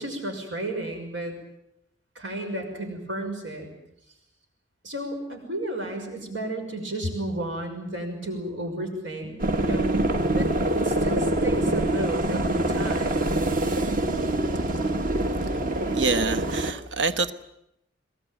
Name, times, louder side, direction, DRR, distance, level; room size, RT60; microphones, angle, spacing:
voice 1, 0.0-1.4 2.1-3.7 4.8-10.0 10.3-10.5 10.8-13.3, right 1 dB, 90° right, 3 dB, 6.1 m, -32 dB
sound 1, 9.4-16.7, right 1 dB, 45° right, 1.3 m, -25 dB
voice 2, 15.9-17.3, right 4 dB, 75° right, 10 dB, 1.2 m, -26 dB
22.5 x 20.5 x 9.1 m, 0.80 s
head